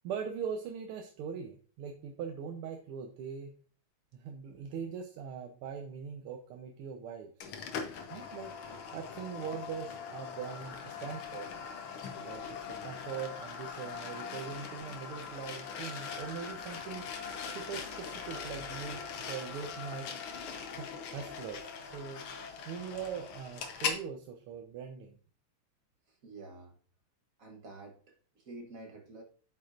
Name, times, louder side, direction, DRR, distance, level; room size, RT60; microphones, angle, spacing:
voice 1, 0.0-3.5 4.1-7.3 8.1-8.5 8.9-11.5 12.2-17.1 17.5-20.1 20.8-22.2 22.7-25.2, right 7 dB, 80° right, 4 dB, 1.6 m, -41 dB
sound 1, 7.4-24.0, left 6 dB, 75° left, 1.8 m, -41 dB
sound 2, 17.7-18.0 18.3-19.0 19.4-20.2 20.6-20.9 21.2-21.5, left 2 dB, 45° left, 2.5 m, -60 dB
voice 2, 26.2-26.7 27.4-28.0 28.3-29.2, right 2 dB, 45° right, 2 dB, 1.3 m, -48 dB
8.4 x 6.3 x 2.5 m, 0.42 s
omnidirectional pair, 2.4 m